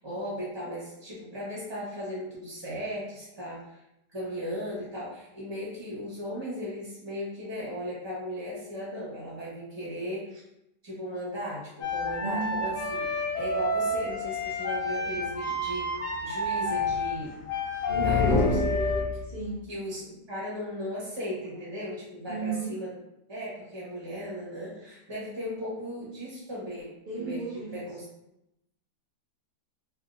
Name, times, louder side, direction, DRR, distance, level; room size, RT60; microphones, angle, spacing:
voice 1, 0.0-3.8 4.1-10.4 10.8-15.9 16.2-17.3 18.0-18.6 19.7-22.9 23.3-26.9 27.2-27.4 27.7-28.0, equal, 20° right, -7 dB, 0.9 m, -36 dB
sound 1, 11.8-19.0, left 2 dB, 55° left, 1.1 m, -30 dB
voice 2, 12.2-12.8 17.9-18.6 19.2-19.7 21.5-21.6 22.3-22.8 27.1-27.9, right 4 dB, 60° right, -9 dB, 0.5 m, -34 dB
sound 2, 17.9-19.5, left 2 dB, 80° left, 1.5 m, -26 dB
3.5 x 2.7 x 2.5 m, 0.86 s
omnidirectional pair, 1.9 m